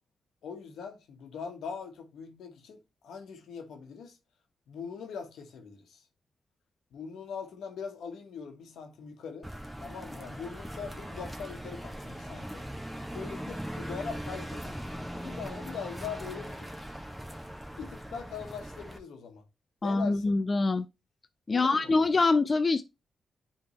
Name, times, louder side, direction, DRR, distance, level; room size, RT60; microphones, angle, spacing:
voice 1, 0.4-4.2 4.7-6.0 6.9-9.5 9.8-12.6 13.1-14.7 15.2-16.7 17.8-19.4 19.8-20.4 21.5-21.9, left 6 dB, 80° left, 1.2 m, -41 dB
sound 1, 9.4-19.0, equal, 5° right, 1.5 m, -40 dB
voice 2, 19.8-20.9 21.5-22.8, left 3 dB, 40° left, 0.4 m, -25 dB
9.6 x 3.5 x 2.9 m
supercardioid pair, 55°, 0 cm